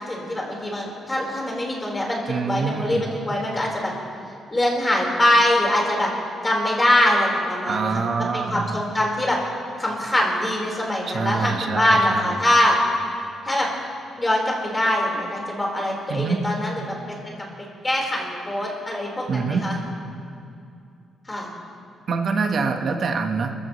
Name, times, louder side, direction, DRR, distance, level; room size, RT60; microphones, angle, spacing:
voice 1, 0.1-3.9 4.5-6.1 6.4-9.4 9.8-12.8 13.5-13.7 14.2-17.2 17.8-19.7 21.3-21.5, left 1 dB, 15° left, -2 dB, 4.5 m, -23 dB
voice 2, 2.3-3.0 7.7-8.8 11.1-12.4 16.1-16.4 19.3-19.7 22.1-23.5, right 4 dB, 55° right, 4 dB, 1.4 m, -25 dB
28.0 x 15.5 x 3.2 m, 2.5 s
cardioid pair, 115°, 0 cm